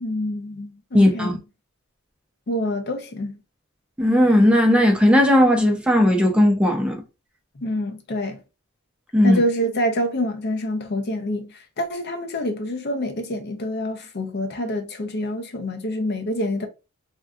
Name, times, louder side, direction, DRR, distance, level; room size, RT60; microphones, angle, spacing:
voice 1, 0.0-1.3 2.5-3.4 7.6-8.4 9.2-16.7, equal, 50° left, 0.6 m, -26 dB
voice 2, 0.9-1.4 4.0-7.0 9.1-9.4, left 1 dB, 5° right, 0.5 m, -16 dB
3.5 x 2.7 x 2.3 m
head